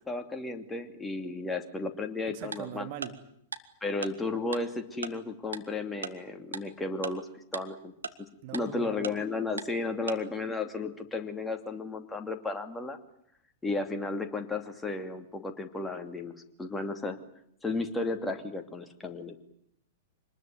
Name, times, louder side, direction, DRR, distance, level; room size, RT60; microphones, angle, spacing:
voice 1, 0.0-2.9 3.8-7.9 8.5-13.0 13.6-17.2 17.6-19.4, left 3 dB, 10° left, 5 dB, 2.7 m, -34 dB
voice 2, 2.3-3.2 8.4-9.1, right 10 dB, 45° right, 7 dB, 2.3 m, -41 dB
Tick-tock, 2.5-2.6 3.0-3.1 3.5-3.6 4.0-4.1 4.5-4.6 5.0-5.1 5.5-5.6 6.0-6.1 6.5-6.6 7.0-7.1 7.5-7.6 8.0-8.1 8.5-8.6 9.0-9.1 9.6-9.7 10.1-10.2, right 5 dB, 80° right, 1.6 m, -36 dB
25.5 x 20.0 x 9.4 m, 0.72 s
figure-of-eight pair, 105°, 0 cm